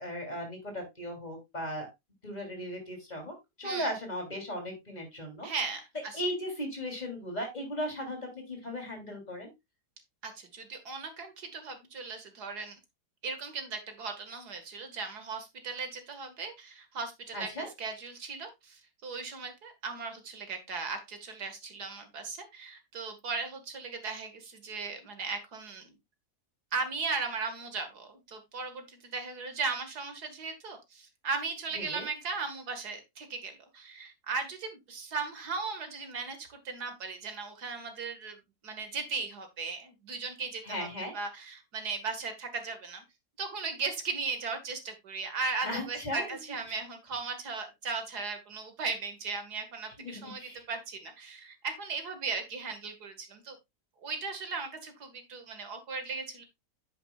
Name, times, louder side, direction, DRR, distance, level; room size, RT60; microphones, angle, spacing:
voice 1, 0.0-1.9 2.2-5.5 6.1-8.2 8.5-9.5 17.3-17.7 31.7-32.1 40.6-41.1 45.6-46.4 46.7-46.8 50.0-50.6, equal, 25° left, 2 dB, 3.3 m, -37 dB
voice 2, 5.4-6.2 10.2-12.8 13.2-25.9 26.7-40.9 41.1-43.0 43.4-53.6 54.0-56.4, right 4 dB, 90° right, 7 dB, 2.3 m, -37 dB
9.6 x 8.5 x 2.4 m, 0.21 s
omnidirectional pair, 1.6 m